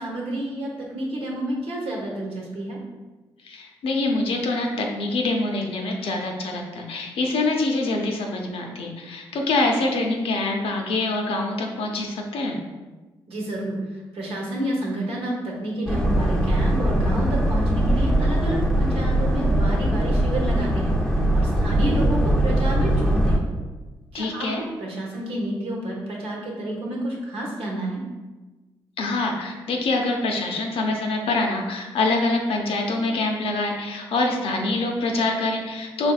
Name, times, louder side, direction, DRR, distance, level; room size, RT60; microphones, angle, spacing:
voice 1, 0.0-2.8 13.3-20.9 21.3-23.5 24.1-28.0, right 1 dB, 75° right, -2 dB, 0.9 m, -29 dB
voice 2, 3.4-12.6 24.1-24.6 29.0-36.1, left 2 dB, 75° left, 2 dB, 0.6 m, -25 dB
Boat Water vehicle, 15.9-23.4, right 1 dB, 5° left, 0.6 m, -21 dB
4.2 x 3.2 x 2.3 m, 1.2 s
supercardioid pair, 55°, 10 cm